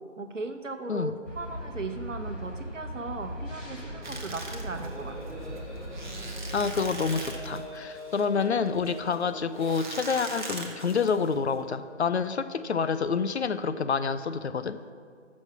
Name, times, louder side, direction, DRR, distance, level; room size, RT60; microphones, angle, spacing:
voice 1, 0.2-5.4, right 3 dB, 85° right, 7 dB, 0.9 m, -37 dB
sound 1, 1.2-7.3, equal, 90° left, 2.5 m, -39 dB
sound 2, 3.6-11.8, equal, 20° right, 2.4 m, -45 dB
sound 3, 4.0-11.6, right 2 dB, 40° right, 1.0 m, -41 dB
voice 2, 6.5-14.9, left 5 dB, 65° left, 12 dB, 0.5 m, -28 dB
7.4 x 6.3 x 5.7 m, 2.2 s
figure-of-eight pair, 155°, 37 cm